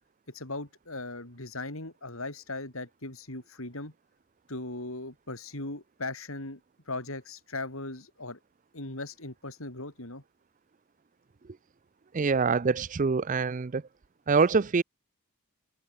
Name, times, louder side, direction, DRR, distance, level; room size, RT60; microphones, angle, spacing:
voice 1, 0.3-3.9 4.5-6.6 6.9-8.4 8.7-10.2, left 2 dB, 70° left, 5.4 m, -38 dB
voice 2, 12.1-13.8 14.3-14.8, right 4 dB, 35° right, 0.4 m, -25 dB
head